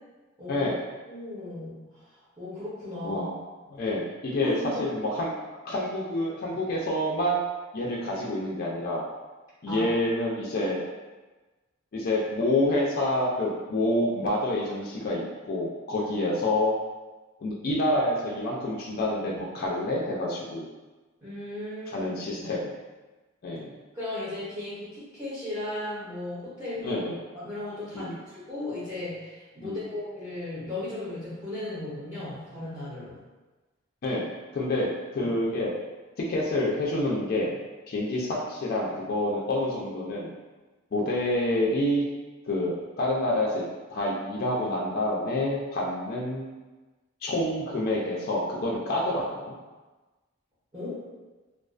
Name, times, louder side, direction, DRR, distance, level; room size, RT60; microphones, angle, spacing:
voice 1, 0.5-0.8 3.0-3.4 3.7-5.3 5.6-7.4 7.7-9.1 9.6-10.8 11.9-16.7 17.4-20.7 21.9-22.7 23.4-23.7 26.8-27.2 27.9-28.2 29.6-29.8 34.0-35.8 36.2-37.6 37.9-40.3 40.9-42.0 42.4-43.6 43.9-46.5 47.2-49.5, left 1 dB, 45° left, -3 dB, 0.3 m, -28 dB
voice 2, 1.1-2.0 2.4-3.2 4.4-4.9 9.7-9.9 21.2-22.1 22.4-22.5 23.5-23.6 23.9-27.0 27.3-33.2 50.7-51.0, left 2 dB, 15° right, -12 dB, 0.7 m, -36 dB
2.3 x 2.3 x 2.3 m, 1.2 s
head